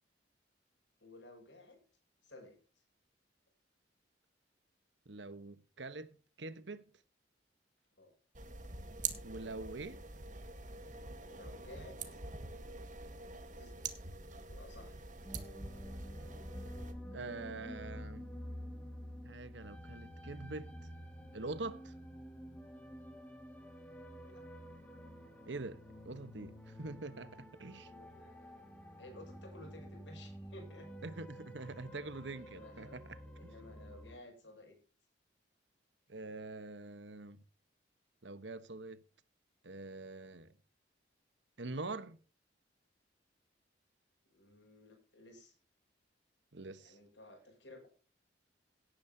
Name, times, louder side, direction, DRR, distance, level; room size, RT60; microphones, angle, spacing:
voice 1, 1.0-1.8 2.2-2.8 8.0-8.1 11.2-12.2 13.6-13.9 14.3-15.0 23.7-23.9 24.2-24.4 27.8-28.6 29.0-31.1 32.4-33.0 33.4-34.8 44.3-45.6 46.8-47.9, left 1 dB, 75° left, 6.6 m, -55 dB
voice 2, 5.1-6.9 9.2-10.0 17.1-18.3 19.2-20.8 21.3-21.9 25.5-27.9 31.0-33.2 36.1-37.4 38.2-39.0 39.6-40.5 41.6-42.2 46.5-47.0, right 3 dB, 75° right, 1.2 m, -45 dB
sound 1, 8.3-16.9, right 4 dB, 45° right, 1.7 m, -45 dB
sound 2, 15.2-34.2, equal, 10° left, 2.1 m, -50 dB
17.5 x 9.3 x 2.8 m
head